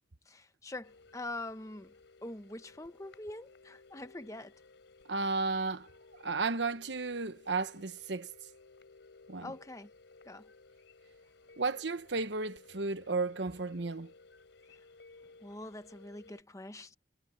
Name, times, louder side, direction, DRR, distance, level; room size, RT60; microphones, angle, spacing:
voice 1, 0.3-1.9 2.2-4.5 9.4-9.9 10.2-10.5 15.4-17.0, left 2 dB, 15° left, 0.9 m, -44 dB
sound 1, 0.8-16.4, left 3 dB, 80° left, 3.7 m, -58 dB
voice 2, 5.1-5.9 6.2-8.3 9.3-9.5 11.6-14.1, right 3 dB, 70° right, 1.1 m, -33 dB
head